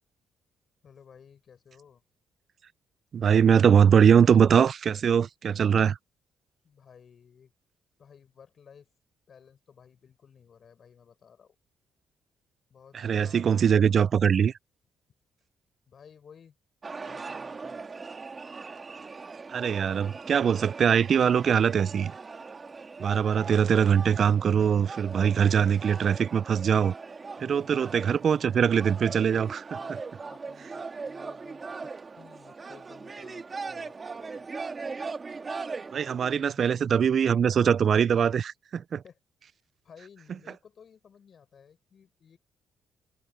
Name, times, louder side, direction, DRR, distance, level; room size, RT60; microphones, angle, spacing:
voice 1, 0.8-2.0 6.6-7.5 8.0-8.9 9.3-11.6 12.7-14.0 15.9-16.6 17.0-17.8 27.3-28.0 29.8-34.5 36.2-36.9 39.0-39.2 39.5-42.4, left 7 dB, 50° left, 5.6 m, -55 dB
voice 2, 3.1-6.0 13.0-14.5 19.5-22.1 23.0-26.9 27.4-29.8 35.9-39.0, right 7 dB, 55° right, 0.3 m, -22 dB
sound 1, 16.8-36.4, right 4 dB, 35° right, 1.9 m, -40 dB
cardioid pair, 90°, 0 cm